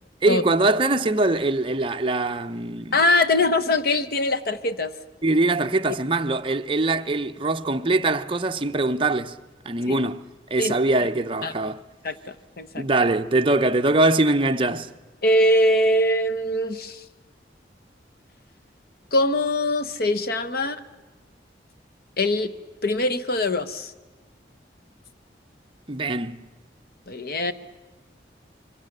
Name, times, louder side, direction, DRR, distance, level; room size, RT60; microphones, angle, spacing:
voice 1, 0.2-3.0 5.2-9.3 9.6-10.2 10.5-11.8 12.8-14.9 25.9-26.4, right 2 dB, 30° right, 0.7 m, -22 dB
voice 2, 2.9-4.9 9.8-10.0 10.6-10.7 11.4-11.5 12.0-12.1 12.6-12.9 15.2-17.0 19.1-20.8 22.2-22.5 22.8-23.9 27.1-27.5, left 1 dB, 55° left, 1.0 m, -22 dB
26.0 x 23.5 x 6.7 m
head